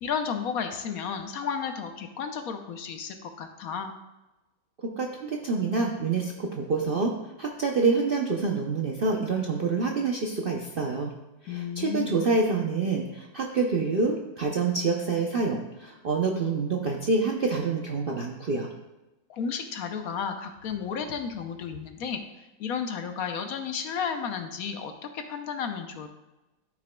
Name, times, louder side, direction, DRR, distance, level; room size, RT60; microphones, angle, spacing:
voice 1, 0.0-3.9 11.5-12.1 19.3-26.1, left 6 dB, 65° left, 6 dB, 1.0 m, -33 dB
voice 2, 5.0-7.1 7.4-11.1 11.4-18.7, right 4 dB, 55° right, 0 dB, 0.6 m, -27 dB
13.0 x 6.0 x 2.2 m, 1.0 s
omnidirectional pair, 1.8 m